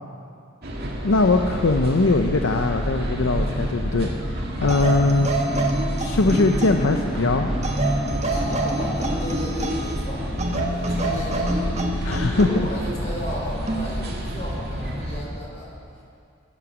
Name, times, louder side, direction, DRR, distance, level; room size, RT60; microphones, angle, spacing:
sound 1, 0.6-15.2, equal, 50° right, 2.0 m, -29 dB
voice 1, 1.0-5.3 6.0-7.5 12.0-12.7, left 3 dB, 65° left, 4 dB, 0.6 m, -21 dB
sound 2, 3.3-9.5, right 1 dB, 5° right, 0.4 m, -31 dB
sound 3, 4.7-6.9 7.6-10.0 10.4-12.6 13.7-13.9, right 1 dB, 35° right, 1.2 m, -28 dB
voice 2, 8.2-16.0, equal, 35° left, -4 dB, 4.2 m, -35 dB
16.0 x 10.0 x 6.1 m, 2.3 s
head